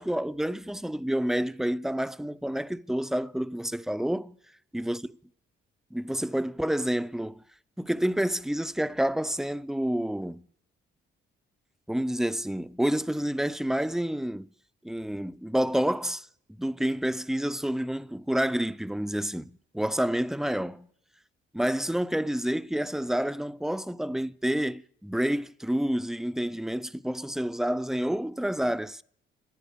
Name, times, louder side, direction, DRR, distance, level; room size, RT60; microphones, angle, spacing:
voice 1, 0.0-4.4 4.7-5.0 5.9-7.4 7.8-10.5 11.9-14.5 14.8-16.3 16.6-20.9 21.5-29.0, equal, ahead, 0.5 m, -29 dB
15.5 x 10.5 x 8.5 m
cardioid pair, 90°, 20 cm